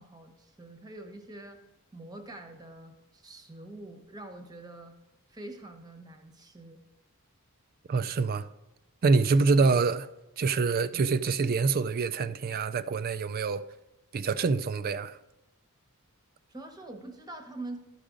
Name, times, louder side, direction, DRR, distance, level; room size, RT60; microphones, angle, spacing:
voice 1, 0.0-1.6 1.9-4.9 5.3-6.8 9.6-9.8 10.9-11.1 16.5-17.8, right 2 dB, 20° right, 0.9 m, -45 dB
voice 2, 7.9-8.5 9.0-10.0 10.4-13.6 14.1-15.2, right 4 dB, 40° right, 0.3 m, -26 dB
12.5 x 5.0 x 3.7 m
head